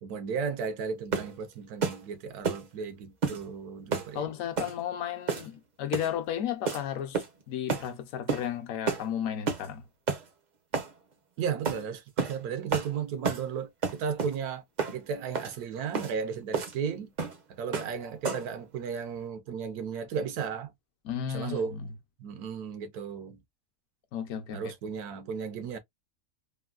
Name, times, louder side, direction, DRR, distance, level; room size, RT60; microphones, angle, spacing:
voice 1, 0.0-4.3 11.4-14.6 14.9-17.1 17.5-20.7 21.3-21.8 22.2-23.4 24.5-25.8, right 6 dB, 80° right, 1.2 m, -34 dB
sound 1, 1.1-1.4 1.8-2.0 2.4-2.7 3.2-3.4 3.9-4.1 4.6-4.8 5.3-5.6 5.9-6.1 6.7-6.8 7.1-7.4 7.7-7.9 8.3-8.5 8.9-9.1 9.5-9.7 10.1-10.2 10.7-10.9 11.7-11.8 12.2-12.4 12.7-12.9 13.2-13.5 13.8-14.4 14.8-15.0 15.3-15.5 15.9-16.1 16.5-16.8 17.2-17.4 17.7-17.9 18.2-18.5, right 5 dB, 50° right, 0.5 m, -30 dB
voice 2, 4.1-9.8 21.0-21.9 24.1-24.7, left 9 dB, 70° left, 1.0 m, -34 dB
3.5 x 2.1 x 2.3 m
omnidirectional pair, 1.6 m